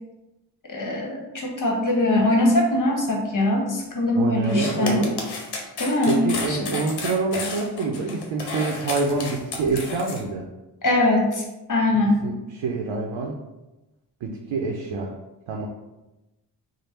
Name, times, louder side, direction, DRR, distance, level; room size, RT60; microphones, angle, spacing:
voice 1, 0.7-5.0 5.8-6.7 10.8-12.2, left 1 dB, 40° left, -1 dB, 1.1 m, -22 dB
voice 2, 4.1-5.1 6.1-10.5 12.2-13.4 14.2-15.1 15.5-15.7, right 4 dB, 75° right, 0 dB, 0.6 m, -26 dB
sound 1, 4.4-10.2, left 3 dB, 60° left, 0.9 m, -32 dB
3.2 x 2.1 x 4.2 m, 1.0 s
supercardioid pair, 45°, 46 cm